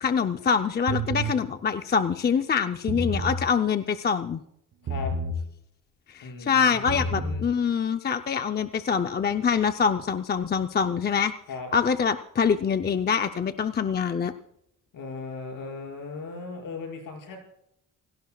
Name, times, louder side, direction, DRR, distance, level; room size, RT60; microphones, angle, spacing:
voice 1, 0.0-4.4 6.1-11.3 11.7-14.3, left 6 dB, 30° left, 7 dB, 0.6 m, -25 dB
sound 1, 0.9-1.4 2.7-3.4 4.9-5.4 6.7-7.4, right 1 dB, 60° right, 3.0 m, -29 dB
voice 2, 6.2-7.5 11.5-11.7 14.9-17.4, left 4 dB, 70° left, 1 dB, 5.9 m, -37 dB
28.5 x 17.5 x 2.3 m, 0.76 s
wide cardioid pair, 155°, 34 cm